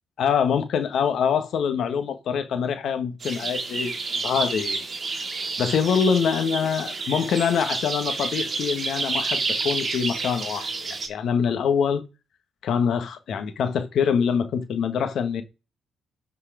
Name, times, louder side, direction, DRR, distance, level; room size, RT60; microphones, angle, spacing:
voice 1, 0.2-4.8 5.6-12.0 12.6-15.4, left 7 dB, 65° left, 1.5 m, -24 dB
sound 1, 3.2-11.1, right 4 dB, 40° right, 1.9 m, -29 dB
12.0 x 4.7 x 5.0 m
cardioid pair, 90°, 0 cm